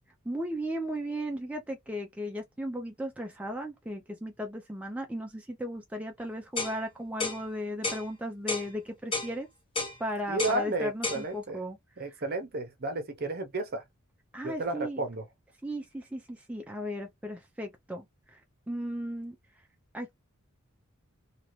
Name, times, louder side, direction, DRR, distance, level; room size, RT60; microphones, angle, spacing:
voice 1, 0.3-9.5 10.0-11.8 12.1-12.2 14.3-15.0 15.6-18.4 18.7-19.4 19.9-20.1, equal, 5° right, 0.4 m, -36 dB
sound 1, 6.6-6.8 7.2-7.4 7.8-8.0 8.5-8.7 9.1-9.3 9.8-10.0 10.4-10.6 11.0-11.2, left 3 dB, 25° left, 0.9 m, -31 dB
voice 2, 10.3-11.6 12.0-13.8 14.4-15.2, right 2 dB, 45° right, 0.8 m, -32 dB
2.8 x 2.7 x 3.1 m
head